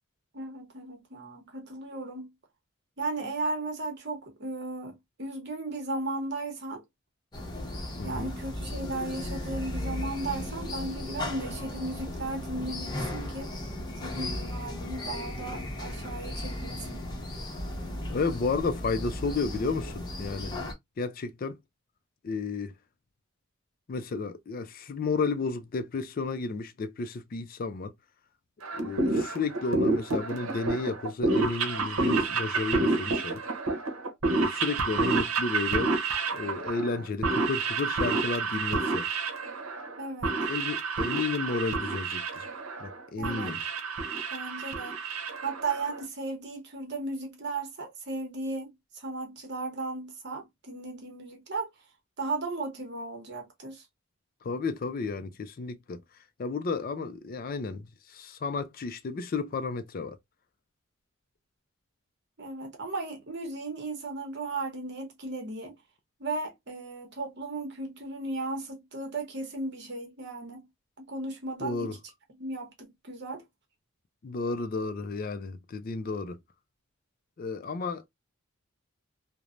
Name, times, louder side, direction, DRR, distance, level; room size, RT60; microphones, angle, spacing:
voice 1, 0.3-2.3 3.0-6.8 8.0-13.5 14.0-17.0 40.0-40.4 43.2-43.6 44.3-45.0 45.4-51.7 52.2-53.9 62.4-65.8 66.2-70.6 71.0-71.9 72.4-73.4, right 2 dB, 50° right, 0.9 m, -36 dB
sound 1, 7.3-20.7, left 1 dB, 20° left, 0.7 m, -36 dB
voice 2, 8.0-8.3 18.1-20.6 21.0-21.6 22.2-22.7 23.9-27.9 28.7-33.4 34.3-35.9 36.3-39.1 40.5-42.5 42.8-43.6 54.4-56.0 56.4-60.2 71.6-71.9 74.2-76.4 77.4-78.1, left 4 dB, 40° left, 0.3 m, -32 dB
sound 2, 28.6-46.0, right 3 dB, 80° right, 0.8 m, -29 dB
3.0 x 2.0 x 2.4 m
head